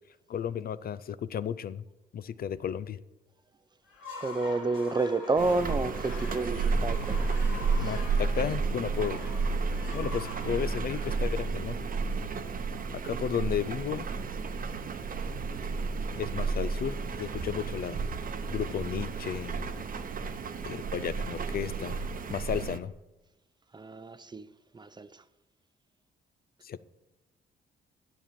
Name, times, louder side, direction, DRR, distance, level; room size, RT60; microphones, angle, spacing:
voice 1, 0.3-1.8 2.1-3.0 7.8-9.2 9.9-11.8 12.9-14.1 16.2-18.1 18.5-19.6 20.6-22.0 22.3-22.9 26.6-26.8, left 8 dB, 50° left, 16 dB, 0.5 m, -33 dB
sound 1, 3.8-12.0, left 3 dB, 80° left, 2.9 m, -45 dB
voice 2, 4.2-7.2 7.8-7.9 23.7-24.5 24.7-25.2, right 3 dB, 20° right, 13 dB, 0.5 m, -30 dB
sound 2, 5.4-22.8, right 4 dB, 45° right, 0.9 m, -32 dB
10.0 x 7.2 x 5.9 m, 1.0 s
cardioid pair, 90°, 20 cm